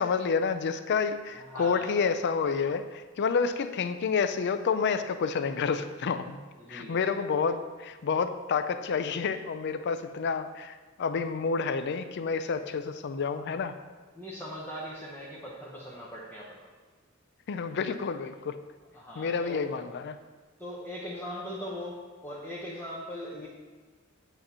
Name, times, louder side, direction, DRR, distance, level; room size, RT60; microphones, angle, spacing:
voice 1, 0.0-6.4 6.7-13.8 17.5-18.6 19.2-20.2, left 5 dB, 55° left, 10 dB, 0.4 m, -29 dB
voice 2, 1.3-2.0 6.6-7.1 14.1-16.7 18.9-19.8 20.6-23.5, equal, 10° left, -7 dB, 0.9 m, -40 dB
8.9 x 3.0 x 5.5 m, 1.4 s
head